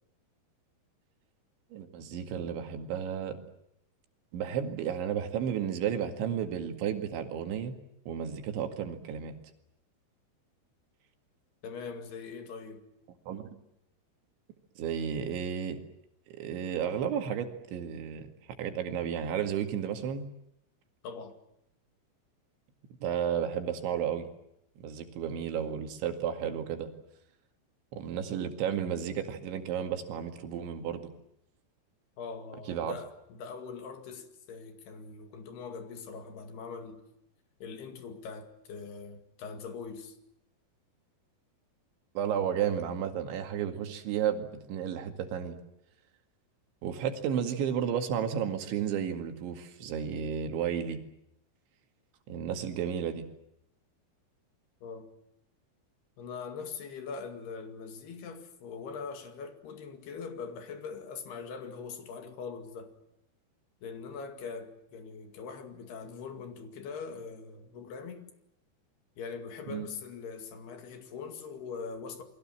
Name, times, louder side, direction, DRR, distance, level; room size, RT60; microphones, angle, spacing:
voice 1, 1.7-3.4 4.3-7.8 8.1-9.4 13.3-13.5 14.8-15.8 16.3-18.3 18.6-20.3 23.0-24.3 24.8-26.9 27.9-31.1 32.7-33.0 42.2-45.6 46.8-51.0 52.3-53.3 69.7-69.9, right 8 dB, 85° right, 4.5 m, -32 dB
voice 2, 11.6-12.8 21.0-21.4 32.2-37.0 37.6-40.2 54.8-55.1 56.2-62.9 63.8-68.3 69.2-72.2, left 5 dB, 65° left, 4.0 m, -42 dB
28.5 x 22.5 x 7.6 m
omnidirectional pair, 5.2 m